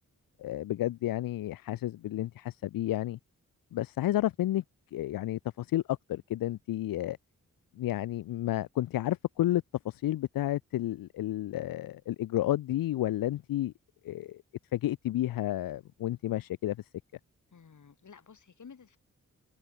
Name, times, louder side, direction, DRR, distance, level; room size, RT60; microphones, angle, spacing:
voice 1, 0.4-3.2 3.7-4.6 4.9-7.2 7.8-13.7 14.0-14.4 14.7-16.8, left 14 dB, 85° left, 0.7 m, -31 dB
voice 2, 17.5-19.0, left 6 dB, 60° left, 5.4 m, -52 dB
supercardioid pair, 50°, 34 cm